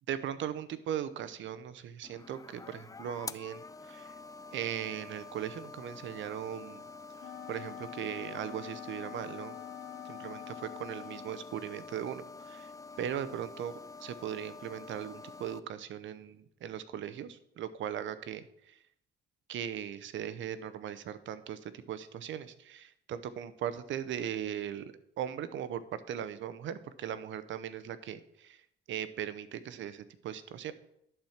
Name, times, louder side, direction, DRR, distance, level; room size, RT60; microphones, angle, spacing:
voice 1, 0.1-4.1 4.5-6.8 7.5-9.6 10.1-12.7 13.0-13.7 14.0-18.8 19.5-28.6 28.9-30.7, right 9 dB, 75° right, 13 dB, 0.8 m, -39 dB
sound 1, 2.0-15.6, left 4 dB, 15° left, 0.4 m, -48 dB
Wind instrument woodwind instrument, 7.2-11.5, left 11 dB, 70° left, 0.6 m, -46 dB
11.0 x 4.5 x 7.3 m, 0.74 s
cardioid pair, 90°, 20 cm